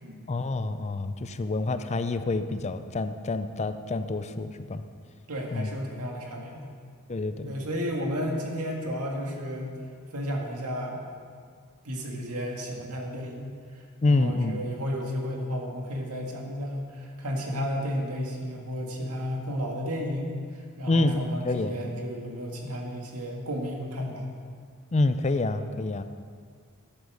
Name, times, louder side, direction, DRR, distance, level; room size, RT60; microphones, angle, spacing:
voice 1, 0.3-4.8 5.5-5.7 7.1-7.5 14.0-14.6 20.9-21.9 24.9-26.0, left 2 dB, 30° left, 10 dB, 0.5 m, -27 dB
voice 2, 5.3-6.7 7.5-9.7 10.1-11.0 11.8-13.5 14.0-20.3 20.8-24.3, equal, 90° right, 0 dB, 2.0 m, -33 dB
12.0 x 8.3 x 6.3 m, 2.1 s
head